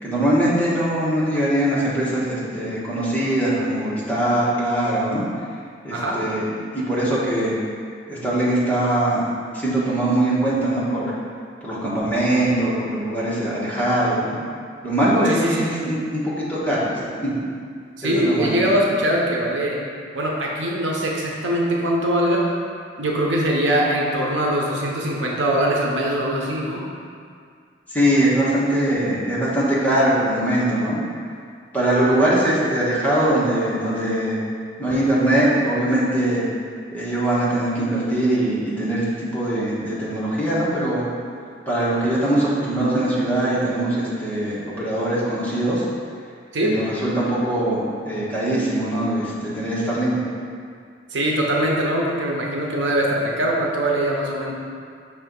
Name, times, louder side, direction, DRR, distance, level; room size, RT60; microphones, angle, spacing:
voice 1, 0.0-5.2 5.8-6.4 6.7-7.6 8.1-9.2 9.5-11.1 11.6-14.4 14.8-17.3 18.0-18.6 27.9-31.0 31.7-34.4 34.8-36.4 36.9-39.0 39.3-41.0 41.7-45.8 46.6-50.2, right 1 dB, 10° left, -9 dB, 1.3 m, -22 dB
voice 2, 15.2-15.7 18.0-19.8 20.1-22.5 23.0-26.9 46.5-46.8 51.1-54.5, right 1 dB, 85° right, -2 dB, 0.9 m, -22 dB
5.5 x 3.4 x 5.3 m, 2.2 s
head